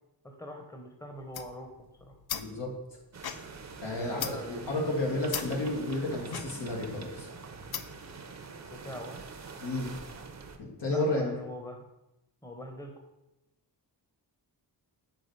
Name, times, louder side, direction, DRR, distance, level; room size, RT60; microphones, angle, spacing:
voice 1, 0.2-1.7 2.0-2.2 3.9-4.9 8.7-9.2 10.9-11.9 12.4-12.9, equal, 10° left, 3 dB, 0.8 m, -43 dB
sound 1, 1.2-8.1, left 9 dB, 60° left, 0.5 m, -41 dB
voice 2, 2.3-2.7 3.8-7.3 9.6-9.9 10.6-11.3, left 2 dB, 80° left, -1 dB, 1.6 m, -32 dB
sound 2, 3.1-10.6, right 4 dB, 40° right, 0.6 m, -45 dB
4.8 x 3.8 x 5.2 m, 0.94 s
wide cardioid pair, 95°, 42 cm